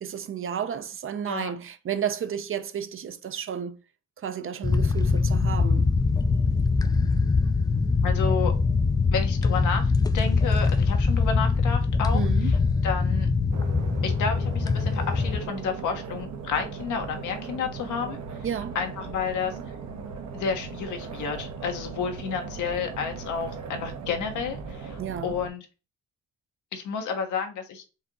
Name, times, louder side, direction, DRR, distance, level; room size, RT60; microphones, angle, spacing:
voice 1, 0.0-3.8 4.2-5.9 12.1-12.5 18.4-18.8 25.0-25.4, right 8 dB, 45° right, 0.6 m, -32 dB
sound 1, 4.6-15.4, left 4 dB, 15° left, 0.3 m, -23 dB
voice 2, 8.0-8.5 9.1-13.3 14.0-18.2 18.7-19.6 20.3-25.7 26.7-27.8, left 6 dB, 80° left, 1.2 m, -31 dB
sound 2, 13.5-25.5, right 5 dB, 65° right, 1.0 m, -38 dB
4.5 x 2.8 x 3.7 m
cardioid pair, 90°, 30 cm